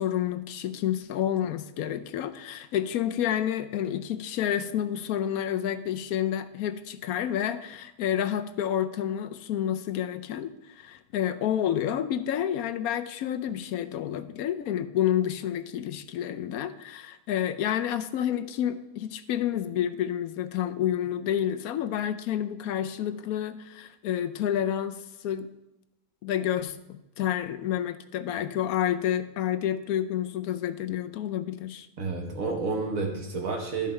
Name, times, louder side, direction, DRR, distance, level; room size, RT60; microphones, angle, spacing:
voice 1, 0.0-25.5 26.2-31.9, left 10 dB, 75° left, 10 dB, 1.1 m, -29 dB
voice 2, 32.0-33.9, right 4 dB, 65° right, 2 dB, 1.6 m, -30 dB
12.0 x 5.5 x 4.3 m, 0.93 s
omnidirectional pair, 1.6 m